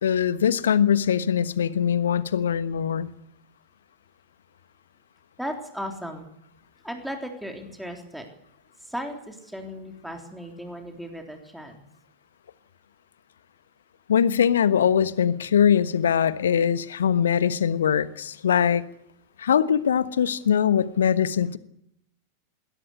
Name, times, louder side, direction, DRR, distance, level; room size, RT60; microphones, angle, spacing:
voice 1, 0.0-3.1 14.1-18.8 19.4-21.6, left 8 dB, 65° left, 1.2 m, -22 dB
voice 2, 5.4-6.3 6.8-8.3 8.8-11.8, equal, ahead, 3.6 m, -36 dB
21.0 x 17.5 x 9.7 m
figure-of-eight pair, 90°, 0 cm